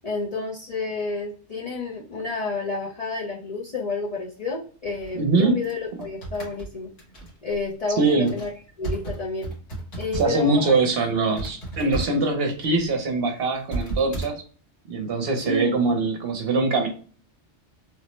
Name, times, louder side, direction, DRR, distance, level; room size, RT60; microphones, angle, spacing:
voice 1, 0.0-6.9 7.4-8.5 8.8-9.5 10.0-10.9 15.4-15.7, left 3 dB, 45° left, -4 dB, 0.5 m, -30 dB
sound 1, 4.8-10.5 10.8-11.0 11.4-14.3, right 2 dB, 75° left, 1.5 m, -34 dB
voice 2, 5.1-5.6 8.0-8.3 10.1-14.3 14.9-16.9, right 3 dB, 60° right, 3 dB, 0.8 m, -22 dB
3.2 x 2.0 x 2.9 m, 0.42 s
omnidirectional pair, 1.2 m